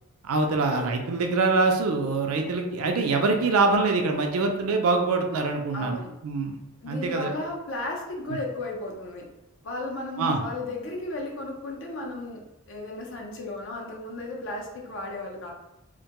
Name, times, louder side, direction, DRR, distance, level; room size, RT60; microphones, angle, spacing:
voice 1, 0.2-6.5 6.9-7.3 10.2-10.4, right 3 dB, 80° right, 4 dB, 0.4 m, -24 dB
voice 2, 5.7-6.1 6.8-9.2 9.6-12.4 12.7-15.5, left 2 dB, 60° left, 0 dB, 0.5 m, -34 dB
2.1 x 2.1 x 2.8 m, 0.93 s
head